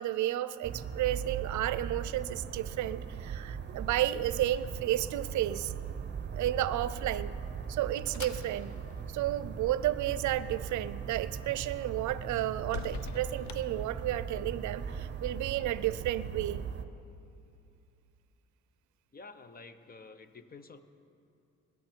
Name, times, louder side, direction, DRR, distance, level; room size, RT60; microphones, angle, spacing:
voice 1, 0.0-5.7 6.3-7.3 7.7-8.7 9.1-16.6, right 13 dB, 75° right, 16 dB, 0.5 m, -32 dB
sound 1, 0.6-16.8, right 7 dB, 35° right, 0.8 m, -39 dB
sound 2, 7.4-14.5, left 7 dB, 70° left, 0.8 m, -49 dB
voice 2, 19.1-20.8, left 4 dB, 30° left, 10 dB, 0.8 m, -50 dB
21.5 x 9.4 x 4.5 m, 2.6 s
cardioid pair, 90°, 30 cm